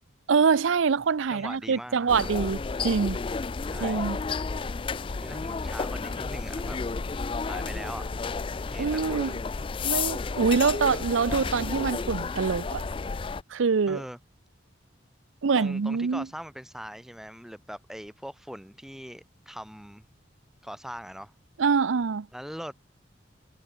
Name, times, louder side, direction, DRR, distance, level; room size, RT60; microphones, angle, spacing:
voice 1, 0.3-3.2 3.8-4.2 8.8-9.3 9.8-12.8 13.5-14.0 15.4-16.3 21.6-22.3, right 5 dB, 85° right, 0.5 m, -25 dB
voice 2, 1.3-2.1 3.6-4.1 5.1-6.8 7.4-8.1 8.6-9.3 13.9-14.2 15.6-20.1 20.6-21.3 22.3-22.7, equal, ahead, 5.6 m, -41 dB
sound 1, 2.1-13.4, left 4 dB, 25° left, 0.3 m, -32 dB
head